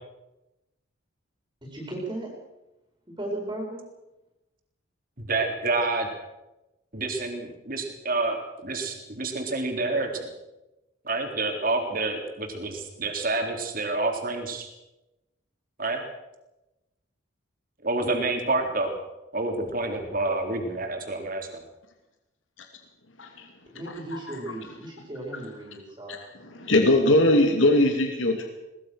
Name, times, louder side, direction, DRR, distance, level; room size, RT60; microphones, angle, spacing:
voice 1, 1.6-2.3 3.0-3.8 23.6-26.2, right 1 dB, 20° right, -1 dB, 4.7 m, -36 dB
voice 2, 5.2-6.1 6.9-10.3 11.0-14.7 15.8-16.0 17.8-18.9 19.3-21.6, right 2 dB, 45° right, 3 dB, 3.8 m, -28 dB
voice 3, 26.5-28.5, left 1 dB, 70° left, 4 dB, 2.6 m, -21 dB
22.5 x 19.5 x 6.4 m, 0.98 s
head